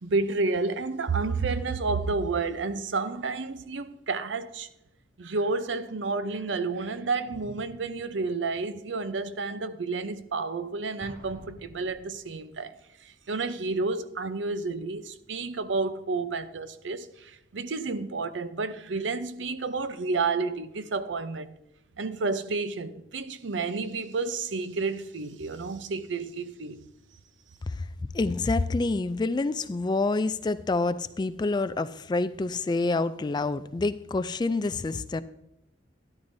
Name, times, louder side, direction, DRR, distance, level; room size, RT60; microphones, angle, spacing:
voice 1, 0.0-4.7 5.2-12.7 13.0-21.5 22.0-26.8, right 3 dB, 80° right, 0.6 m, -30 dB
Explosion, 11.0-12.7, right 1 dB, 55° right, 1.8 m, -48 dB
voice 2, 28.1-35.2, left 3 dB, 25° left, 0.3 m, -27 dB
12.5 x 11.5 x 2.7 m
head